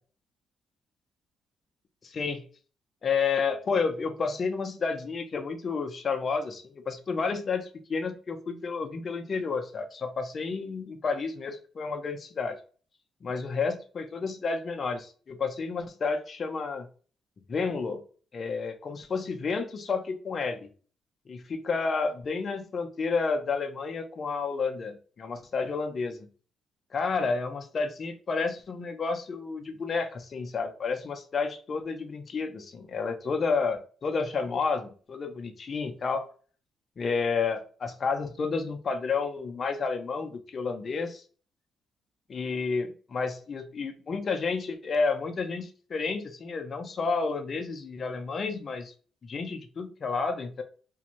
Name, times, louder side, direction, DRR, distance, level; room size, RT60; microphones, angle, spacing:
voice 1, 2.0-2.4 3.0-12.6 13.2-16.9 17.5-18.0 18.3-20.7 21.3-26.2 26.9-36.3 37.0-41.2 42.3-48.9 49.2-50.6, left 4 dB, 45° left, 6 dB, 0.5 m, -31 dB
2.5 x 2.2 x 2.9 m, 0.40 s
cardioid pair, 90°, 0 cm